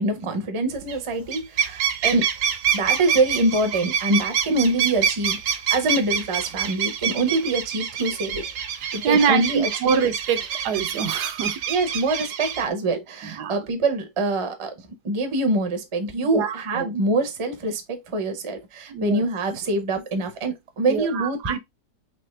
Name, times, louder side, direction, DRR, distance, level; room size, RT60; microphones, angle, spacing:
voice 1, 0.0-2.3 2.7-8.5 8.9-10.0 11.7-14.7 15.0-21.6, right 2 dB, 30° right, 0.5 m, -25 dB
sound 1, 0.8-1.0 1.3-12.7, right 8 dB, 65° right, 0.9 m, -27 dB
voice 2, 9.0-11.6 13.4-13.5 16.3-16.9 18.9-19.2 20.9-21.6, right 6 dB, 80° right, 1.3 m, -24 dB
4.3 x 2.9 x 3.1 m
omnidirectional pair, 1.7 m